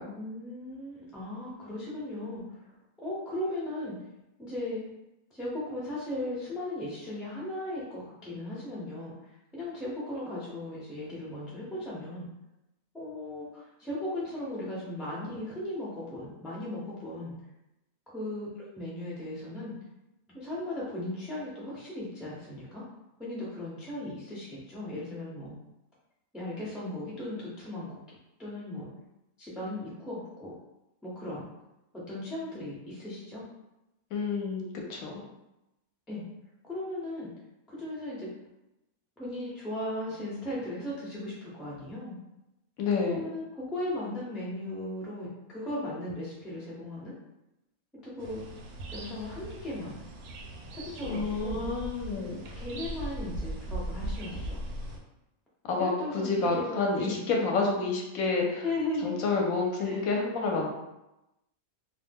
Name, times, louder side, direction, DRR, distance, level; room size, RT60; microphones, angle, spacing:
voice 1, 0.1-2.7 3.0-4.0 4.4-4.8 5.3-12.3 12.9-17.4 18.1-19.7 20.3-22.8 23.2-25.6 26.3-28.0 28.4-28.9 29.4-30.5 31.0-31.5 31.9-33.4 36.1-36.2 36.6-37.3 37.7-38.3 39.2-42.1 43.0-47.1 48.0-48.5 48.9-50.0 50.7-51.6 52.6-54.6 55.8-57.3 58.6-59.3 59.8-60.0, left 1 dB, ahead, -6 dB, 0.3 m, -37 dB
voice 2, 34.1-34.6 34.9-35.2 42.8-43.2 51.0-52.5 55.7-58.6 59.0-60.7, left 3 dB, 70° left, 0 dB, 1.0 m, -29 dB
sound 1, 48.2-55.0, right 1 dB, 80° right, 1.0 m, -39 dB
2.6 x 2.1 x 3.4 m, 0.92 s
omnidirectional pair, 1.5 m